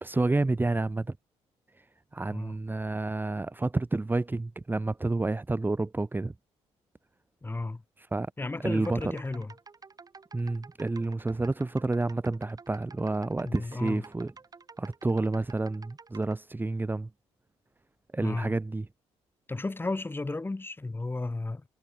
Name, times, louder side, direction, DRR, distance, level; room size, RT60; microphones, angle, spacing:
voice 1, 0.0-1.2 2.1-6.3 8.0-8.3 8.6-9.2 10.3-14.3 14.8-17.1 18.1-18.9, right 2 dB, 15° right, 1.5 m, -29 dB
voice 2, 7.4-7.8 8.4-9.5 13.4-14.0 18.2-18.5 19.5-21.7, left 2 dB, 20° left, 4.0 m, -33 dB
sound 1, 8.7-16.4, right 4 dB, 35° right, 6.9 m, -51 dB
cardioid pair, 85°, 11 cm